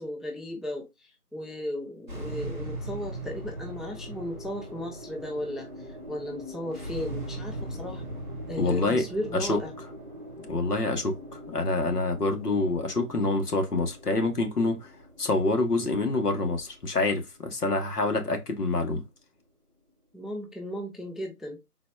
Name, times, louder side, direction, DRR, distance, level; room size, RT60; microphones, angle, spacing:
voice 1, 0.0-8.0 8.5-9.7 20.1-21.6, left 1 dB, ahead, 0.4 m, -36 dB
sound 1, 2.1-18.5, right 1 dB, 30° right, 0.8 m, -40 dB
voice 2, 8.6-9.0 9.3-9.6 10.4-11.2 11.5-14.9 15.2-19.0, left 2 dB, 80° left, 1.2 m, -26 dB
4.0 x 2.3 x 3.1 m
figure-of-eight pair, 175°, 46 cm